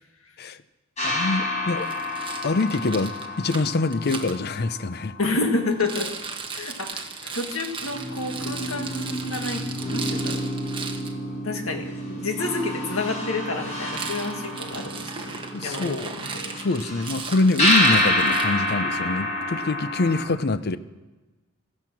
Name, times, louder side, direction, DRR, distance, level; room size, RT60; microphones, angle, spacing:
voice 1, 1.0-1.9 2.4-5.2 7.2-7.4 15.2-16.1 16.5-20.8, left 3 dB, 50° left, 14 dB, 0.6 m, -25 dB
sound 1, 1.0-5.8 7.3-7.4 7.8-20.2, left 1 dB, 35° left, 6.0 m, -28 dB
Rattle, 1.8-4.4 5.7-11.1 13.8-18.8, right 5 dB, 25° right, 1.3 m, -36 dB
voice 2, 5.2-6.1 6.5-7.0 7.3-10.4 11.4-16.6, left 3 dB, 70° left, 4 dB, 1.9 m, -29 dB
16.5 x 13.0 x 6.1 m, 1.2 s
head